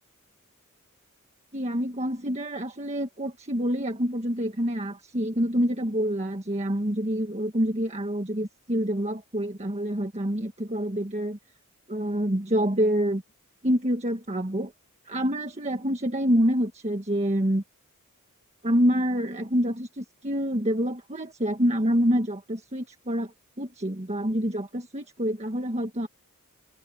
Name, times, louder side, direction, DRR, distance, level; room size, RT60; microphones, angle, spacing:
voice 1, 1.5-11.4 11.9-13.2 13.6-14.7 15.0-17.6 18.6-26.1, equal, 30° right, 1.5 m, -27 dB
open air
head